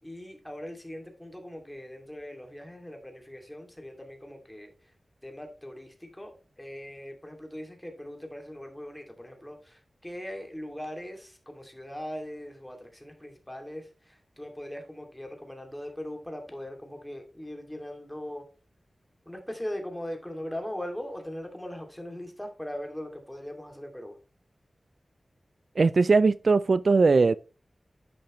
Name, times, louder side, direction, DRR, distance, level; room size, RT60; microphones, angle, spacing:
voice 1, 0.0-4.9 5.2-18.5 19.3-24.2, left 1 dB, 10° left, 2.4 m, -40 dB
voice 2, 25.8-27.4, right 4 dB, 60° right, 0.3 m, -20 dB
10.5 x 7.0 x 3.1 m
wide cardioid pair, 95°, 0 cm